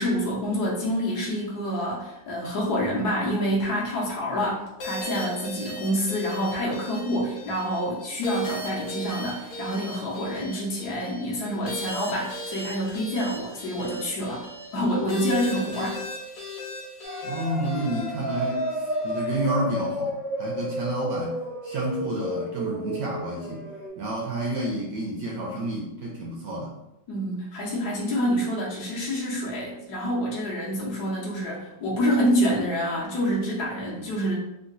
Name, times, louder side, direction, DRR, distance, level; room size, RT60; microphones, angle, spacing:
voice 1, 0.0-14.4 14.7-16.0 27.1-34.3, equal, 65° left, -4 dB, 1.3 m, -27 dB
sound 1, 4.8-19.3, equal, 80° left, 1.5 m, -37 dB
sound 2, 17.0-23.9, equal, 40° right, 0.5 m, -31 dB
voice 2, 17.2-21.4 21.6-23.6 24.0-26.7 33.9-34.1, right 1 dB, 70° right, -2 dB, 0.9 m, -30 dB
3.8 x 2.1 x 2.5 m, 0.87 s
omnidirectional pair, 2.0 m